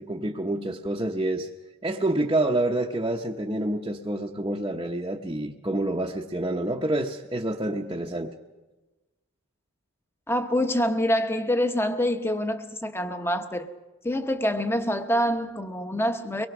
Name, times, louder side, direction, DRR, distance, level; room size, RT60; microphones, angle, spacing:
voice 1, 0.0-1.5 1.8-8.3, right 1 dB, 20° right, 0.8 m, -28 dB
voice 2, 10.3-13.7 14.0-16.5, equal, 10° left, 1.0 m, -26 dB
24.0 x 21.5 x 6.0 m
head